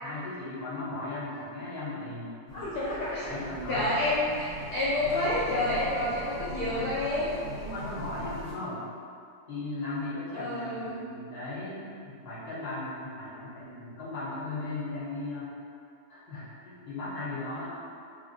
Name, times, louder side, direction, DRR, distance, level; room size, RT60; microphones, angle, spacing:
voice 1, 0.0-2.7 3.3-3.9 7.5-8.8 9.5-15.5 16.1-17.7, left 2 dB, 40° left, -11 dB, 1.1 m, -37 dB
voice 2, 2.5-3.3 3.7-4.5 4.7-7.4 10.3-11.0, left 1 dB, 70° left, -9 dB, 1.0 m, -29 dB
sound 1, 2.5-8.5, equal, 60° right, 1.5 m, -41 dB
3.2 x 2.4 x 2.7 m, 2.5 s
omnidirectional pair, 1.8 m